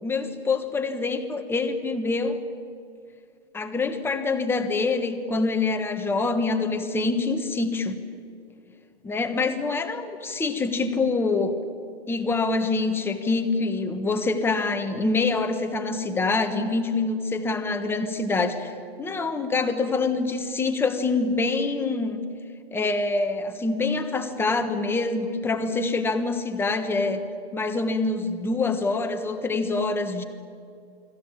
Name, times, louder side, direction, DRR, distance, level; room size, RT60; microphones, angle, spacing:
voice 1, 0.0-2.4 3.5-8.0 9.0-11.5 12.1-18.7 19.0-22.2 22.7-27.2 27.5-30.2, left 3 dB, 5° left, 7 dB, 1.4 m, -25 dB
29.5 x 21.0 x 8.6 m, 2.4 s
hypercardioid pair, 150°, 32 cm